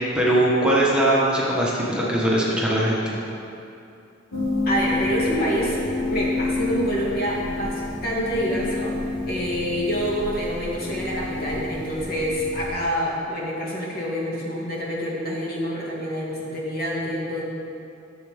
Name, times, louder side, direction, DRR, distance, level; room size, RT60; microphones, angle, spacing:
voice 1, 0.1-3.2, right 1 dB, 5° right, -6 dB, 1.1 m, -21 dB
sound 1, 4.3-12.7, left 2 dB, 75° left, 1.3 m, -29 dB
voice 2, 4.6-5.8 6.1-9.0 9.3-17.4, equal, 50° left, -4 dB, 1.8 m, -27 dB
13.0 x 7.2 x 3.5 m, 2.7 s
head